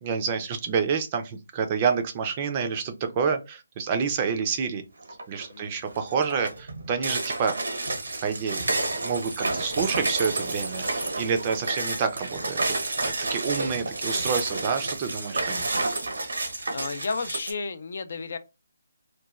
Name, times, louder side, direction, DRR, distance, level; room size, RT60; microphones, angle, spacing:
voice 1, 0.0-4.8 5.3-7.6 8.2-8.7 9.0-12.6 13.0-15.7, right 6 dB, 25° right, 0.4 m, -28 dB
sound 1, 5.1-5.5 5.9-17.5, right 2 dB, 85° right, 0.9 m, -30 dB
voice 2, 16.7-18.4, left 4 dB, 55° left, 0.4 m, -32 dB
3.0 x 2.2 x 2.3 m
hypercardioid pair, 160°, 0 cm